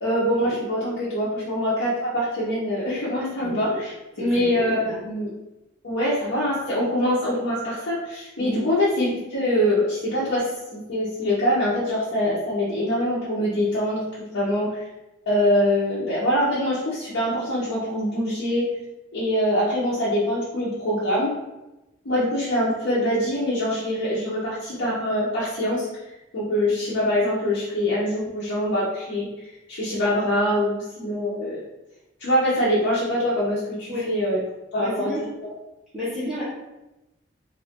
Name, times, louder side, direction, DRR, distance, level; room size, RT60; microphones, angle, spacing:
voice 1, 0.0-3.9 4.2-5.3 5.8-10.4 10.7-14.8 15.3-18.7 19.1-21.3 22.0-25.9 26.3-29.3 29.7-31.6 32.2-34.4 34.7-35.1, equal, 75° left, -9 dB, 0.8 m, -24 dB
voice 2, 3.4-3.7 4.1-5.0 8.4-8.6 14.4-14.5 33.9-34.0 34.8-35.2 35.9-36.4, equal, ahead, -12 dB, 0.9 m, -31 dB
2.8 x 2.5 x 3.5 m, 0.99 s
head